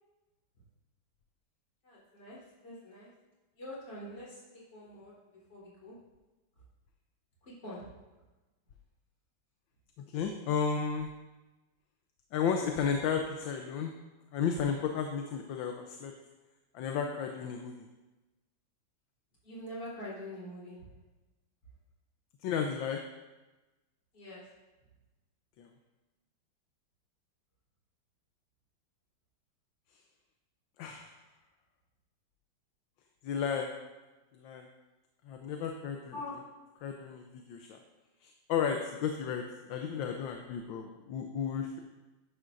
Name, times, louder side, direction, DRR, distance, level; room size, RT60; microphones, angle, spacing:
voice 1, 1.8-2.4 2.6-3.1 3.6-4.4 4.7-5.1 5.5-5.9 7.4-7.9 19.4-20.9 24.1-24.4 36.1-36.4, left 1 dB, 60° left, -8 dB, 4.3 m, -44 dB
voice 2, 10.1-11.1 12.3-13.9 14.3-16.1 16.7-17.9 22.4-23.0 25.6-25.7 30.8-31.1 33.2-33.7 34.3-34.6 35.3-36.2 36.8-37.8 38.2-39.4 39.7-41.8, left 6 dB, 75° left, 4 dB, 1.4 m, -33 dB
11.0 x 11.0 x 2.6 m, 1.1 s
omnidirectional pair, 2.2 m